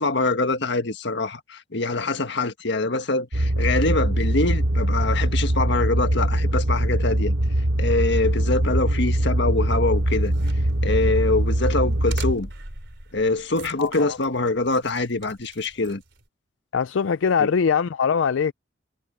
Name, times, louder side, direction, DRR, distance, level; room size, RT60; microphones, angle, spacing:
voice 1, 0.0-7.3 7.8-10.3 10.8-12.5 13.1-16.0 17.4-17.5, left 3 dB, 65° left, 1.6 m, -24 dB
sound 1, 3.3-12.4, right 1 dB, 85° right, 1.5 m, -22 dB
sound 2, 9.9-16.3, right 2 dB, 65° right, 4.3 m, -42 dB
voice 2, 13.8-14.2 16.7-18.5, left 6 dB, 80° left, 0.4 m, -22 dB
head